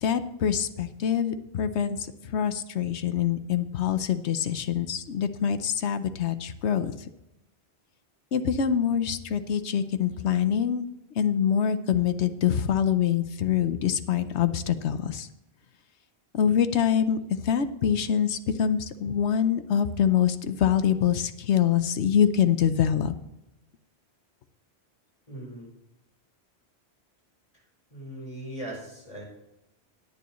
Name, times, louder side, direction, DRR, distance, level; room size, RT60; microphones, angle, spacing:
voice 1, 0.0-2.1 2.3-6.9 8.3-10.8 11.2-15.3 16.3-17.2 17.4-23.1, left 8 dB, 85° left, 10 dB, 1.1 m, -25 dB
voice 2, 25.3-25.7 27.5-27.6 27.9-29.2, right 1 dB, 35° left, -2 dB, 5.0 m, -39 dB
17.5 x 9.3 x 3.1 m, 0.90 s
omnidirectional pair, 1.1 m